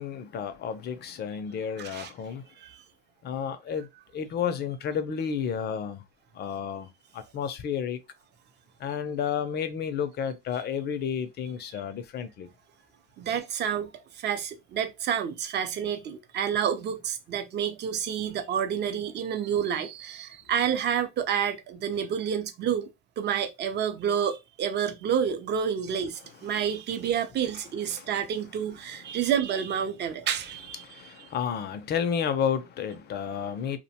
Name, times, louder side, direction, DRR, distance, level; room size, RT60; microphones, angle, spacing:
voice 1, 0.0-2.4 3.2-3.9 4.1-6.0 6.3-8.0 8.8-12.5 27.9-28.1 29.0-29.2 30.8-33.8, left 7 dB, 30° left, 0.5 m, -31 dB
voice 2, 1.8-2.1 2.6-2.9 13.2-22.9 23.2-30.8, right 8 dB, 30° right, 0.5 m, -29 dB
2.4 x 2.2 x 2.7 m
supercardioid pair, 105°, 33 cm